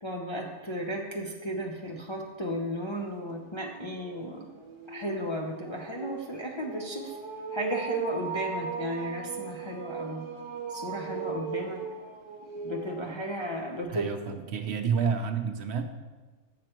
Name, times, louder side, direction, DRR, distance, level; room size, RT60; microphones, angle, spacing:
voice 1, 0.0-4.5 4.9-7.2 7.5-10.2 10.7-11.8 12.6-14.1, equal, 35° left, -1 dB, 0.4 m, -34 dB
sound 1, 2.6-2.7 3.1-13.8, right 5 dB, 30° right, 0.6 m, -38 dB
voice 2, 13.9-15.8, right 6 dB, 65° right, 7 dB, 0.8 m, -29 dB
7.7 x 5.9 x 4.4 m, 1.3 s
omnidirectional pair, 1.3 m